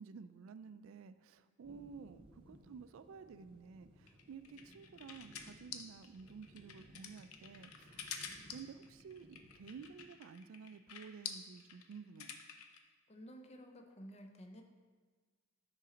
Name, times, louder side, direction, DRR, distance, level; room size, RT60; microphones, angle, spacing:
voice 1, 0.0-12.4, right 6 dB, 65° right, 12 dB, 0.3 m, -53 dB
sound 1, 1.6-10.0, right 1 dB, 25° right, 0.9 m, -62 dB
sound 2, 4.1-12.8, left 7 dB, 80° left, 0.6 m, -48 dB
voice 2, 13.1-14.6, equal, 30° left, 5 dB, 0.5 m, -53 dB
6.7 x 4.0 x 5.1 m, 1.5 s
head